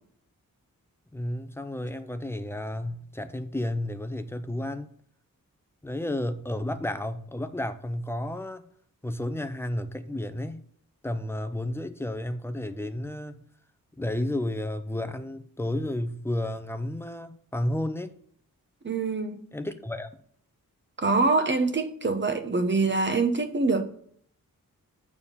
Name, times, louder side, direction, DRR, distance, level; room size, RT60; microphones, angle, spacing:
voice 1, 1.1-4.9 5.8-8.6 9.0-10.6 11.0-13.5 14.0-18.1 19.5-20.1, left 1 dB, 5° left, 0.6 m, -32 dB
voice 2, 18.8-19.4 21.0-23.8, right 3 dB, 30° right, 0.9 m, -24 dB
7.2 x 4.4 x 6.8 m
wide cardioid pair, 110°, 35 cm